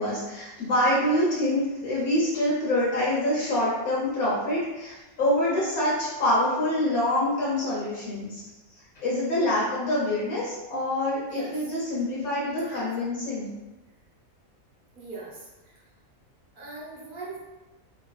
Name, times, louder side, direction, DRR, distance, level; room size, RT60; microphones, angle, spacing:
voice 1, 0.0-8.4 9.0-13.5, left 1 dB, 80° left, -8 dB, 1.3 m, -26 dB
voice 2, 11.3-11.7 12.5-12.8 14.9-15.8 16.5-17.4, right 2 dB, 45° right, -7 dB, 0.8 m, -39 dB
2.8 x 2.3 x 2.4 m, 1.1 s
omnidirectional pair, 1.5 m